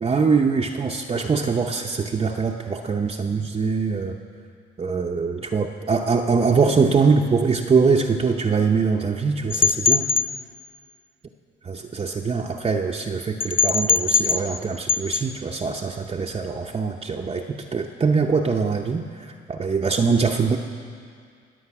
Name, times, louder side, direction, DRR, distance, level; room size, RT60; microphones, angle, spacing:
voice 1, 0.0-4.2 4.8-10.1 11.6-20.6, right 5 dB, 30° right, 0 dB, 0.7 m, -23 dB
sound 1, 9.5-10.3 13.4-14.6 14.9-15.2, left 6 dB, 25° left, 0.5 m, -21 dB
20.0 x 7.9 x 5.9 m, 2.2 s
cardioid pair, 90°, 20 cm